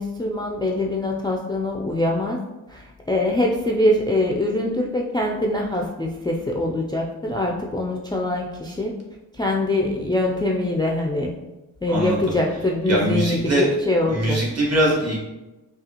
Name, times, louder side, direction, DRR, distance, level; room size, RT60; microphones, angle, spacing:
voice 1, 0.0-2.4 2.7-8.9 9.3-11.3 11.8-14.5, left 1 dB, 10° left, -2 dB, 0.3 m, -23 dB
voice 2, 11.9-12.2 12.9-13.7 14.1-15.2, right 1 dB, 45° right, -3 dB, 1.4 m, -21 dB
5.1 x 2.4 x 2.8 m, 1.0 s
cardioid pair, 85°, 37 cm